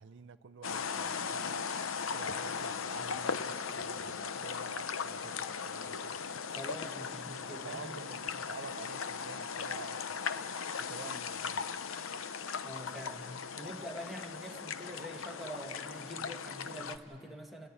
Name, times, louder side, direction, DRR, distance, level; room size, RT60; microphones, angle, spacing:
voice 1, 0.0-1.6 2.1-6.1 7.4-10.2 10.9-11.7, right 5 dB, 60° right, 11 dB, 0.5 m, -49 dB
sound 1, 0.6-17.0, left 6 dB, 75° left, 0.7 m, -38 dB
voice 2, 6.5-8.2 12.6-13.2 13.5-17.7, equal, ahead, 1 dB, 1.4 m, -45 dB
28.0 x 14.0 x 9.6 m, 2.9 s
head